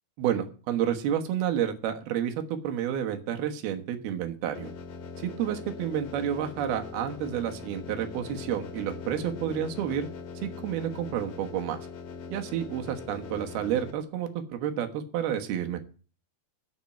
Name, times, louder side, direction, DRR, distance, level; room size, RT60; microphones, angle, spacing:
voice 1, 0.2-4.7 5.2-10.1 10.4-11.8 12.3-15.8, right 10 dB, 90° right, 6 dB, 3.3 m, -30 dB
sound 1, 4.5-13.9, left 5 dB, 75° left, 3.4 m, -41 dB
9.1 x 7.2 x 8.9 m, 0.37 s
omnidirectional pair, 4.3 m